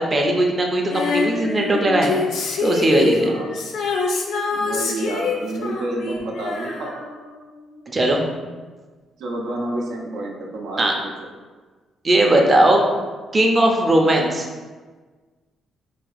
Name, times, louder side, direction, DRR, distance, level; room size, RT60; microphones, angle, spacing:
voice 1, 0.0-2.2 2.6-3.3 7.9-8.2 10.8-10.9 12.0-12.9 13.3-14.5, right 1 dB, 30° right, 1 dB, 0.6 m, -18 dB
Female singing, 0.9-7.5 7.8-7.9, left 4 dB, 75° left, 0.6 m, -25 dB
voice 2, 4.5-7.1 9.2-10.9, right 1 dB, 80° right, 0 dB, 0.6 m, -29 dB
3.4 x 2.8 x 4.0 m, 1.4 s
cardioid pair, 90°, 0 cm